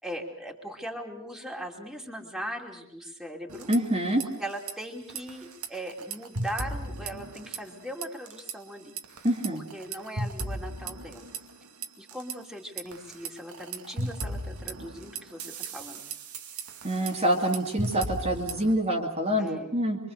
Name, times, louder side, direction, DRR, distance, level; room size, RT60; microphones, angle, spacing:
voice 1, 0.0-3.7 4.4-9.0 9.7-11.3 12.0-16.0 19.4-19.7, equal, ahead, 1 dB, 2.8 m, -39 dB
sound 1, 3.5-4.3 4.5-4.7 5.1-7.8 8.0-8.5 9.0-12.3 12.8-18.7, right 2 dB, 85° right, 2.4 m, -36 dB
voice 2, 3.7-4.2 9.2-9.6 16.8-20.0, right 1 dB, 30° right, 0 dB, 2.4 m, -26 dB
25.5 x 24.5 x 6.8 m, 0.69 s
head